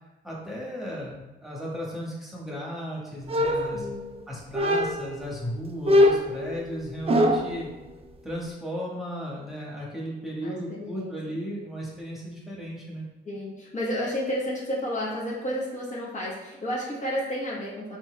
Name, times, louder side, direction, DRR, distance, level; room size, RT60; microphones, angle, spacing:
voice 1, 0.2-3.9 4.3-7.7 8.2-13.1, equal, ahead, -5 dB, 1.3 m, -35 dB
sound 1, 3.3-4.1 4.5-5.2 5.9-7.6, left 1 dB, 30° right, 0.4 m, -22 dB
voice 2, 3.7-4.2 10.4-11.3 13.2-18.0, equal, 40° left, -5 dB, 1.1 m, -31 dB
4.4 x 4.1 x 2.2 m, 1.1 s
cardioid pair, 90°, 20 cm